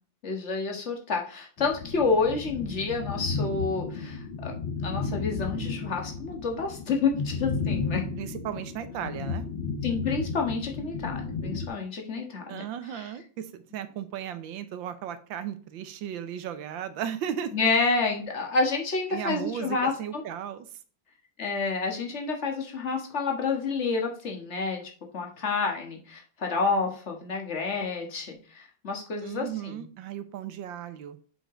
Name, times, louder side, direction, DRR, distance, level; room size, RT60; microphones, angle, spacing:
voice 1, 0.2-4.5 4.8-8.0 9.8-12.6 12.9-13.1 17.5-20.2 21.4-24.8 25.1-29.8, left 4 dB, 40° left, 2 dB, 1.7 m, -29 dB
sound 1, 1.6-11.7, left 4 dB, 85° left, 2.0 m, -33 dB
voice 2, 8.2-9.5 12.5-17.5 19.1-20.7 29.2-31.2, right 9 dB, 80° right, 11 dB, 1.5 m, -35 dB
7.6 x 5.2 x 3.8 m, 0.42 s
omnidirectional pair, 2.1 m